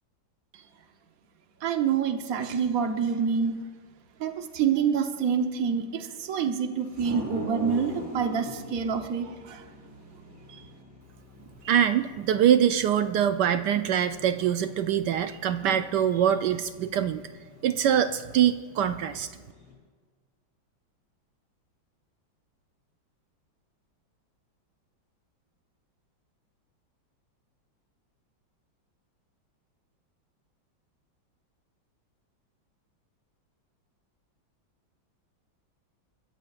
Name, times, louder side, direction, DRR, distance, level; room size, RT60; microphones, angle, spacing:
voice 1, 1.6-3.6 4.2-9.6, right 7 dB, 50° right, 6 dB, 1.3 m, -27 dB
sound 1, 6.9-19.7, right 1 dB, 10° right, 5.4 m, -43 dB
voice 2, 11.6-17.2 17.6-19.3, right 9 dB, 70° right, 9 dB, 1.1 m, -24 dB
29.5 x 14.0 x 2.5 m, 1.5 s
omnidirectional pair, 2.2 m